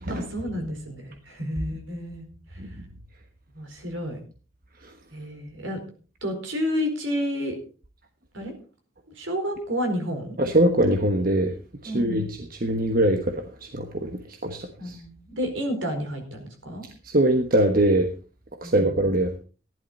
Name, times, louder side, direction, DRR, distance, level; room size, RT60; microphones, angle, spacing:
voice 1, 0.1-2.3 3.5-4.2 5.1-5.8 6.2-7.6 8.3-8.5 9.2-10.4 11.8-12.3 14.8-16.9 18.6-18.9, equal, 70° right, 5 dB, 4.6 m, -30 dB
voice 2, 10.4-11.5 11.8-13.2 13.7-15.0 17.1-18.1 18.6-19.4, right 1 dB, 45° right, 5 dB, 1.2 m, -22 dB
15.0 x 11.0 x 4.3 m, 0.37 s
head